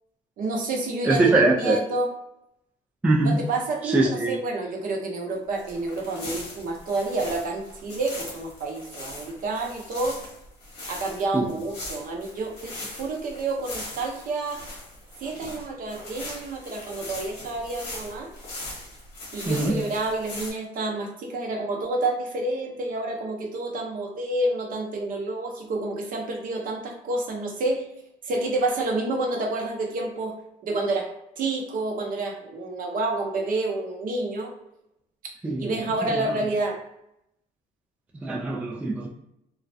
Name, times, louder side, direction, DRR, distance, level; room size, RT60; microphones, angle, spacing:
voice 1, 0.4-2.1 3.2-10.2 10.9-14.6 15.2-18.3 19.3-27.9 28.2-30.3 30.6-34.5 35.6-36.8, right 2 dB, 55° right, 1 dB, 0.6 m, -29 dB
voice 2, 1.0-1.8 3.0-3.4 3.8-4.4 11.3-11.5 19.5-19.8 35.4-35.7 36.0-36.3 38.2-39.1, right 2 dB, 10° right, -2 dB, 0.3 m, -22 dB
sound 1, 5.5-20.5, left 2 dB, 85° left, 1.1 m, -40 dB
2.3 x 2.1 x 2.6 m, 0.82 s
cardioid pair, 110°, 17 cm